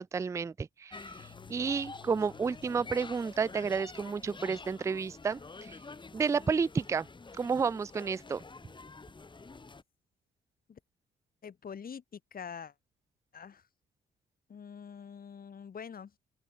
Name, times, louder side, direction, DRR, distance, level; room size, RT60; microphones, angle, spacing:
voice 1, 0.0-5.8 6.1-7.1 7.4-8.4, right 5 dB, 15° right, 0.3 m, -31 dB
sound 1, 0.9-9.8, left 3 dB, 25° left, 2.1 m, -48 dB
sound 2, 1.2-3.7, left 12 dB, 70° left, 2.8 m, -56 dB
voice 2, 11.4-12.7 13.3-13.6 14.5-16.1, left 7 dB, 45° left, 4.8 m, -45 dB
open air
cardioid pair, 90°, 20 cm